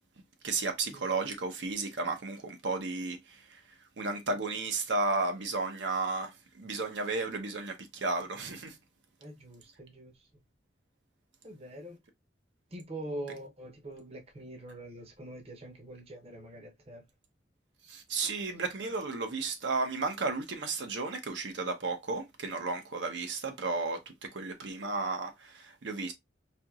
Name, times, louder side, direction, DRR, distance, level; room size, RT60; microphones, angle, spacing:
voice 1, 0.4-3.6 4.0-8.8 17.9-26.1, right 3 dB, 80° right, 0.8 m, -33 dB
voice 2, 9.2-10.3 11.4-12.0 12.7-17.0 18.2-18.3, right 1 dB, 35° right, 0.7 m, -44 dB
4.4 x 2.8 x 2.4 m
head